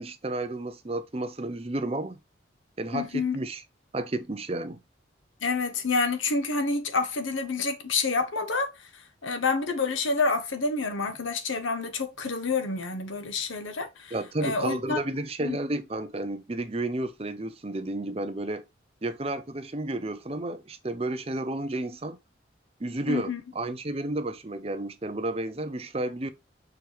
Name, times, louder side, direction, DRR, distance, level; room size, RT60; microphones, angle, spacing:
voice 1, 0.0-2.2 2.8-3.6 3.9-4.8 14.1-18.6 19.0-22.2 22.8-26.3, right 2 dB, 30° right, 0.7 m, -32 dB
voice 2, 2.9-3.4 5.4-8.7 9.2-15.0 15.4-15.6 23.1-23.4, left 4 dB, 85° left, 1.2 m, -28 dB
6.6 x 4.5 x 3.3 m
head